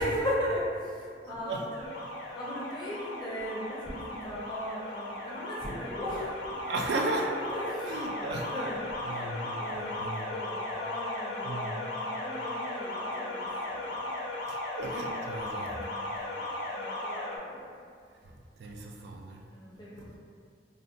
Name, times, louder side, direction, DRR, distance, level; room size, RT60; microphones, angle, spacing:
voice 1, 0.0-1.9 2.3-6.6 7.5-14.1 15.5-15.9 16.2-16.4 16.7-17.7 19.5-20.0, equal, 25° left, -6 dB, 0.4 m, -37 dB
voice 2, 1.3-1.7 6.7-7.3 7.9-10.3 11.4-11.8 14.5-15.8 18.2-19.4 20.0-20.1, right 2 dB, 70° right, 1 dB, 0.3 m, -36 dB
Alarm, 1.7-17.4, left 1 dB, 85° left, 0.5 m, -37 dB
2.5 x 2.1 x 2.5 m, 2.2 s
head